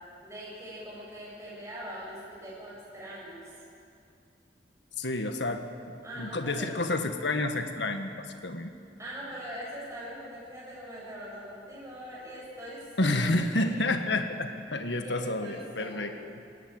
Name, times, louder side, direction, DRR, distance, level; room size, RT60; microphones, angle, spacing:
voice 1, 0.2-3.4 6.0-6.7 9.0-13.2 13.5-13.9 15.0-16.2, equal, 15° right, -7 dB, 7.0 m, -42 dB
voice 2, 5.0-8.7 13.0-16.1, left 2 dB, 85° left, 7 dB, 1.7 m, -30 dB
22.0 x 17.5 x 9.0 m, 2.4 s
head